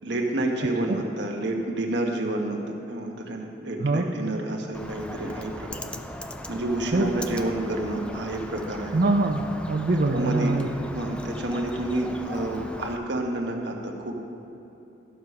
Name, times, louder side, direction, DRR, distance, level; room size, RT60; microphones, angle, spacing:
voice 1, 0.0-2.6 2.9-5.9 6.5-9.0 10.1-10.5 10.9-14.2, right 1 dB, 70° right, 1 dB, 1.3 m, -29 dB
Bird, 4.7-13.0, left 1 dB, 5° left, 0.4 m, -39 dB
voice 2, 8.9-10.7, right 2 dB, 50° right, 1 dB, 0.5 m, -23 dB
12.5 x 6.5 x 5.5 m, 3.0 s
head